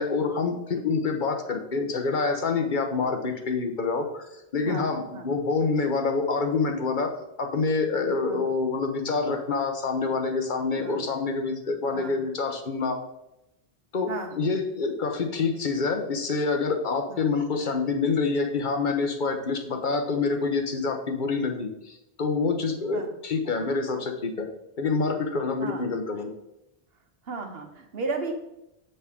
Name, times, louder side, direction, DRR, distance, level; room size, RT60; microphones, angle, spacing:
voice 1, 0.0-4.3 4.5-7.1 7.4-13.0 13.9-24.5 24.8-26.3, left 4 dB, 50° left, 5 dB, 1.1 m, -27 dB
voice 2, 4.6-5.3 8.2-8.5 10.8-11.1 11.9-12.2 14.1-14.3 17.1-17.3 22.9-23.1 25.6-25.9 27.3-28.3, right 3 dB, 65° right, 5 dB, 1.3 m, -35 dB
7.4 x 6.7 x 3.6 m, 0.88 s
omnidirectional pair, 1.1 m